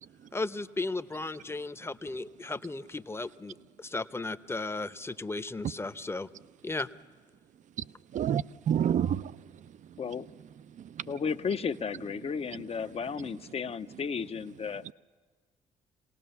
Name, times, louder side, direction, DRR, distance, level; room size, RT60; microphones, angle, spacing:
voice 1, 0.3-6.3 6.6-6.9, left 3 dB, 15° left, 0.9 m, -35 dB
voice 2, 7.8-9.2 9.6-10.3 10.7-11.1 12.5-12.7 13.2-13.4 14.7-14.9, right 9 dB, 50° right, 0.6 m, -32 dB
voice 3, 11.1-14.8, left 6 dB, 40° left, 0.8 m, -34 dB
27.0 x 18.5 x 6.9 m
hypercardioid pair, 55°, 16 cm